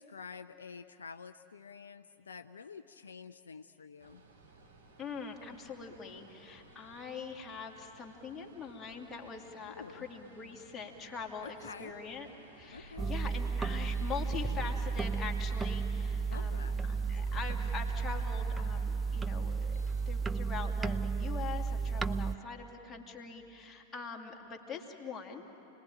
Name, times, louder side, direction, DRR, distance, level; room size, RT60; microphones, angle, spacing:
voice 1, 0.0-4.2 9.7-10.1 11.4-12.0 12.7-13.1 16.2-16.8, left 5 dB, 70° left, 9 dB, 0.5 m, -48 dB
sound 1, 4.0-20.5, right 2 dB, 65° right, 3.9 m, -54 dB
voice 2, 5.0-12.3 12.5-19.7 20.1-25.5, left 5 dB, 20° left, 0 dB, 2.6 m, -43 dB
sound 2, 13.0-22.4, right 5 dB, 15° right, 0.6 m, -33 dB
29.0 x 20.5 x 9.1 m, 2.9 s
figure-of-eight pair, 90°, 0 cm